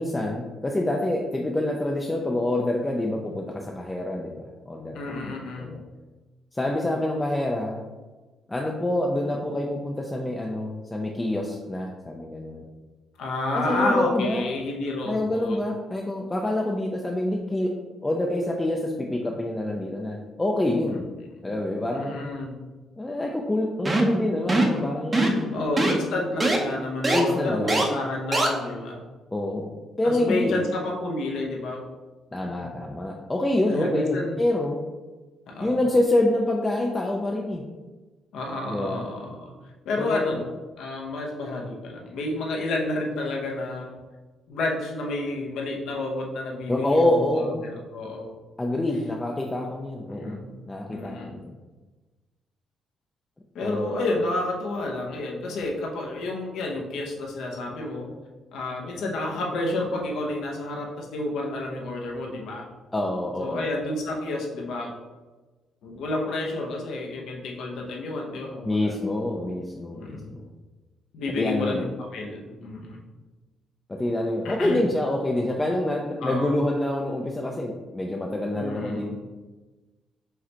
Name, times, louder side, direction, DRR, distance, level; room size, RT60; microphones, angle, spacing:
voice 1, 0.0-5.2 5.6-5.8 6.5-7.8 8.5-12.7 13.7-14.4 15.1-17.7 18.0-21.0 21.4-22.3 23.0-25.6 27.1-27.8 29.3-30.6 32.3-34.8 35.6-37.6 38.7-39.0 40.0-40.4 46.7-47.6 48.6-50.4 50.7-51.5 53.6-54.2 62.9-63.7 68.6-70.4 71.4-71.8 73.9-79.1, left 1 dB, 15° left, -1 dB, 0.5 m, -26 dB
voice 2, 4.9-5.7 13.2-15.6 20.9-22.5 25.5-29.0 30.0-31.9 32.4-32.7 33.7-34.4 35.5-35.8 38.3-39.5 39.8-40.5 40.8-44.0 44.5-48.3 50.1-50.5 50.9-51.4 53.5-58.1 58.5-62.7 63.4-64.9 65.8-68.9 69.9-70.4 71.1-73.0 74.4-74.8 76.2-76.5 78.5-79.1, left 2 dB, 80° left, -1 dB, 0.9 m, -30 dB
sound 1, 23.9-24.2 24.5-24.8 25.1-25.4 25.8-25.9 26.4-26.6 27.0-27.2 27.7-27.8 28.3-28.5, right 2 dB, 25° right, 0.7 m, -21 dB
4.8 x 3.2 x 2.9 m, 1.3 s
cardioid pair, 90°, 0 cm